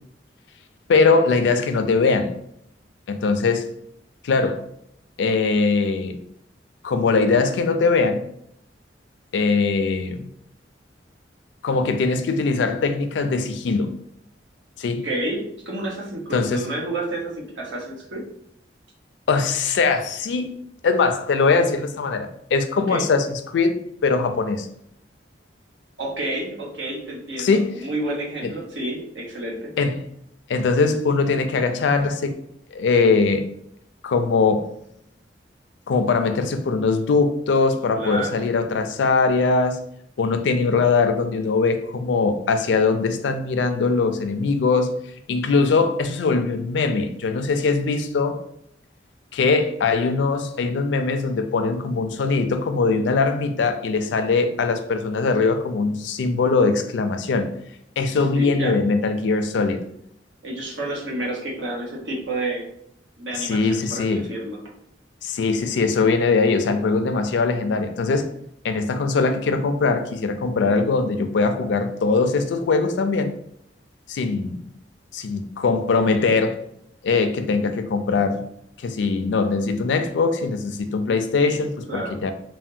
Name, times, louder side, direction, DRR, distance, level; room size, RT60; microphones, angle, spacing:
voice 1, 0.9-2.3 3.1-3.7 4.2-4.6 5.2-6.2 6.8-8.2 9.3-10.3 11.6-13.9 14.8-15.1 16.3-16.6 19.3-20.5 20.8-23.8 24.0-24.7 27.4-27.7 28.4-28.5 29.8-30.0 30.5-32.4 32.7-33.5 34.0-34.7 35.9-39.8 40.2-44.9 45.3-48.4 49.3-57.5 58.0-59.8 63.3-64.3 65.2-68.3 68.6-73.3 74.1-74.6 75.1-76.6 77.0-78.4 78.8-82.3, left 4 dB, 75° left, 0.4 m, -21 dB
voice 2, 15.0-15.4 15.6-18.2 22.7-23.0 26.0-29.7 38.0-38.4 58.3-58.7 60.4-62.7 63.2-64.6 81.9-82.2, right 1 dB, 85° right, 0.9 m, -30 dB
3.3 x 2.1 x 2.6 m
head